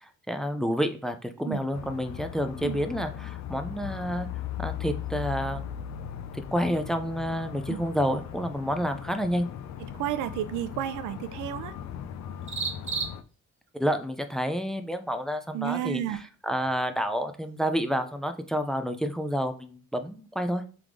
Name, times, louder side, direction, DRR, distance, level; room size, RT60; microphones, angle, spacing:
voice 1, 0.0-4.3 4.6-5.6 6.5-9.5 13.7-16.0 16.4-20.6, equal, ahead, 0.5 m, -29 dB
sound 1, 1.7-13.2, left 10 dB, 65° left, 0.5 m, -38 dB
sound 2, 2.9-19.7, right 5 dB, 40° right, 0.9 m, -45 dB
voice 2, 9.8-11.8 15.5-16.2, right 12 dB, 90° right, 0.5 m, -31 dB
3.7 x 3.5 x 3.1 m
cardioid pair, 90°, 30 cm